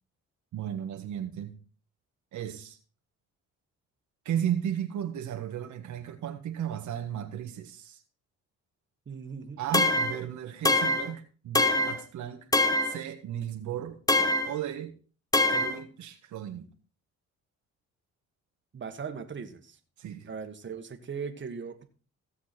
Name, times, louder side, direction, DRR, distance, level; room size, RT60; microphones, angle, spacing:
voice 1, 0.5-1.6 2.3-2.8 4.3-8.0 9.6-12.5 12.8-14.9 15.5-16.7 20.0-20.3, right 10 dB, 75° right, 1.6 m, -35 dB
voice 2, 9.1-9.6 18.7-19.8 20.2-21.8, right 6 dB, 40° right, 1.8 m, -38 dB
sound 1, 9.7-10.2 10.7-11.1 11.6-12.0 12.5-13.0 14.1-14.5 15.3-15.8, left 2 dB, 10° left, 1.1 m, -24 dB
16.5 x 7.2 x 4.4 m
cardioid pair, 90°, 30 cm